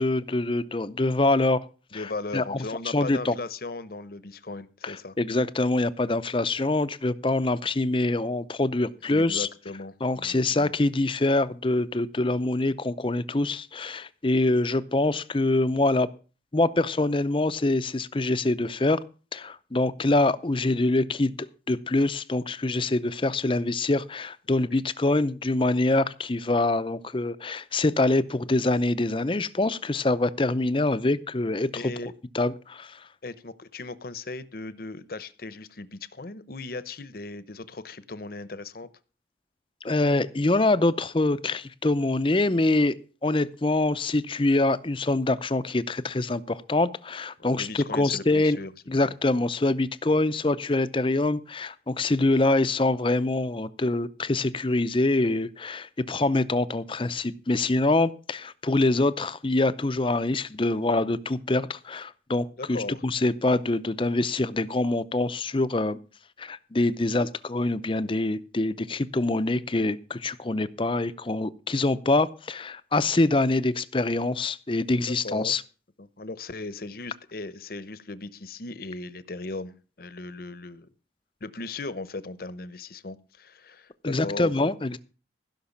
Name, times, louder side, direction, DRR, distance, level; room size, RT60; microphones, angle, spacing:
voice 1, 0.0-1.6 1.9-2.0 2.3-2.6 2.9-3.4 4.8-9.5 10.0-16.1 16.5-19.0 19.3-21.3 21.7-31.9 32.3-33.0 39.8-42.9 43.2-48.6 48.9-66.0 66.4-75.6 84.0-85.0, left 2 dB, 25° left, 0.6 m, -25 dB
voice 2, 1.9-5.2 9.0-10.7 31.7-32.1 33.2-38.9 47.4-49.1 62.6-63.0 75.0-75.6 76.0-80.9 81.4-84.5, left 3 dB, 50° left, 0.9 m, -37 dB
16.0 x 6.0 x 7.2 m
head